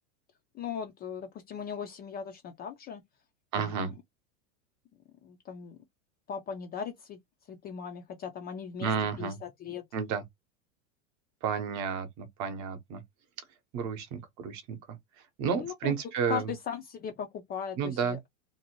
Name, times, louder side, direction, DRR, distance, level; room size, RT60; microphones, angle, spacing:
voice 1, 0.6-3.0 3.5-3.9 5.2-5.8 6.3-7.2 7.5-8.9 9.2-9.8 15.6-15.9 16.3-18.2, left 7 dB, 25° left, 0.4 m, -38 dB
voice 2, 3.5-3.9 8.8-9.4 9.9-10.2 11.4-13.0 13.7-14.8 15.4-16.5 17.8-18.2, right 6 dB, 45° right, 0.8 m, -31 dB
2.7 x 2.1 x 2.9 m
supercardioid pair, 120°, 42 cm